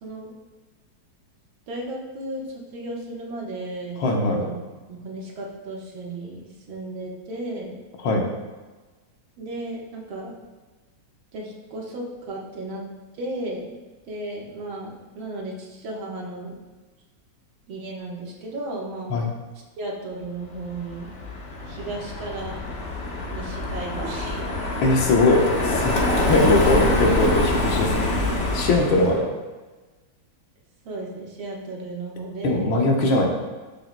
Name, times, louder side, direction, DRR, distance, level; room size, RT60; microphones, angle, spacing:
voice 1, 0.0-0.3 1.7-4.0 4.3-4.6 4.9-7.8 9.4-10.3 11.3-12.8 13.2-13.8 14.1-16.5 17.7-19.2 19.8-21.1 21.7-22.6 23.3-24.8 26.1-26.3 27.1-27.2 28.9-29.1 30.9-32.7, right 2 dB, 85° right, -2 dB, 2.1 m, -34 dB
voice 2, 4.0-4.5 8.0-8.2 19.1-19.3 24.8-28.1 28.5-29.2 32.4-33.3, left 2 dB, 85° left, 0 dB, 1.9 m, -20 dB
Car passing by, 20.6-29.2, left 2 dB, 45° left, 1.1 m, -25 dB
12.0 x 5.5 x 2.2 m, 1.3 s
omnidirectional pair, 2.2 m